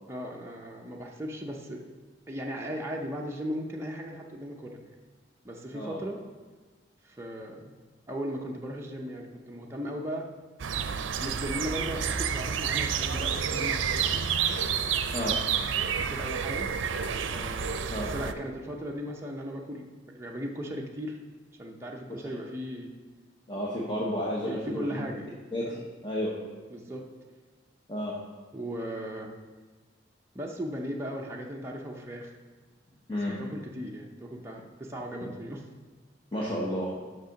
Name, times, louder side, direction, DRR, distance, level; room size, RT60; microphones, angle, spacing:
voice 1, 0.1-1.8 2.3-4.8 5.4-6.2 7.0-7.8 8.1-10.3 11.2-14.2 15.9-16.7 17.3-21.2 21.6-22.9 24.4-25.3 25.6-25.8 26.7-27.1 28.5-29.3 30.3-32.3 33.4-35.6, equal, 15° right, -1 dB, 0.6 m, -37 dB
sound 1, 10.6-18.3, right 7 dB, 90° right, 0.5 m, -29 dB
voice 2, 23.5-25.0 25.5-26.3 27.9-28.1 33.1-33.4 35.2-35.3 36.3-36.9, equal, 25° left, -5 dB, 0.9 m, -32 dB
6.5 x 5.8 x 5.7 m, 1.3 s
head